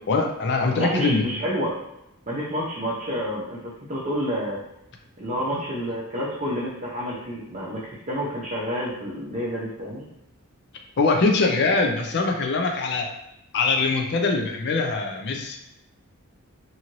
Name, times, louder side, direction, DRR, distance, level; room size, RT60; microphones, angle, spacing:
voice 1, 0.1-1.2 5.5-5.6 11.0-13.1 13.5-15.6, left 3 dB, 50° left, 3 dB, 0.5 m, -22 dB
voice 2, 0.8-1.7 2.3-4.6 5.2-10.0, equal, 35° right, -7 dB, 0.6 m, -29 dB
2.7 x 2.5 x 3.0 m, 0.86 s
head